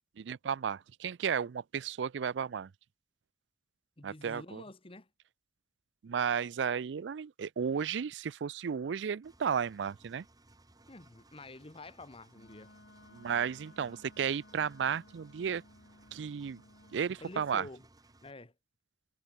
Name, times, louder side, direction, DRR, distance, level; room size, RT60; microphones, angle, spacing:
voice 1, 0.2-2.7 4.0-4.6 6.0-10.2 13.1-15.6 16.1-16.6 16.9-17.7, right 7 dB, 85° right, 0.4 m, -33 dB
voice 2, 4.0-5.1 10.9-12.7 17.2-17.9 18.2-18.5, left 2 dB, 30° left, 1.7 m, -49 dB
Engine, 9.2-18.3, right 2 dB, 20° right, 2.2 m, -62 dB
Wind instrument woodwind instrument, 12.3-17.1, left 2 dB, 70° left, 3.4 m, -58 dB
head